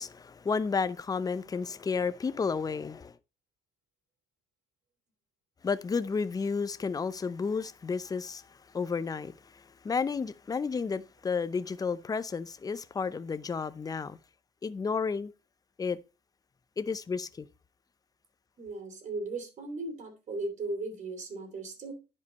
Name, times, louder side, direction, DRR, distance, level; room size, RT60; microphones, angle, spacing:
voice 1, 0.0-3.2 5.6-8.5 8.7-14.2 14.6-15.3 15.8-16.0 16.8-17.5, left 5 dB, 20° left, 0.6 m, -32 dB
voice 2, 18.6-21.9, right 2 dB, 45° right, 3.5 m, -37 dB
10.0 x 5.4 x 4.1 m
cardioid pair, 110°, 17 cm